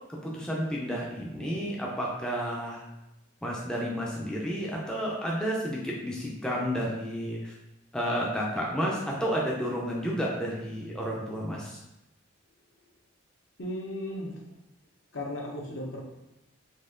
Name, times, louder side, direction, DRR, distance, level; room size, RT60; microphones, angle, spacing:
voice 1, 0.1-2.8 3.4-7.5 7.9-11.8, equal, 5° left, -4 dB, 0.5 m, -31 dB
voice 2, 13.6-14.3 15.1-16.0, left 1 dB, 60° left, -2 dB, 0.9 m, -35 dB
4.2 x 2.9 x 3.7 m, 0.93 s
head